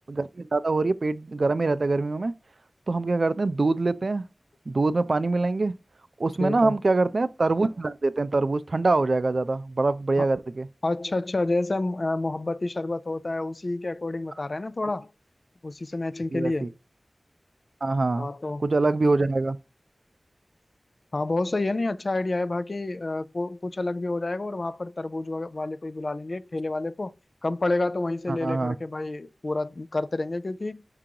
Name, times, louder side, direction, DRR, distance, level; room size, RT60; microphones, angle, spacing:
voice 1, 0.1-2.3 2.9-4.2 4.7-5.7 6.2-10.7 16.3-16.7 17.8-18.3 18.6-19.6 28.3-28.8, right 3 dB, 65° right, 0.4 m, -24 dB
voice 2, 6.4-6.8 10.2-10.3 10.8-15.1 15.6-16.7 18.2-18.7 21.1-27.1 27.4-30.8, left 2 dB, 55° left, 0.3 m, -29 dB
4.7 x 3.8 x 2.8 m
wide cardioid pair, 55°, 0 cm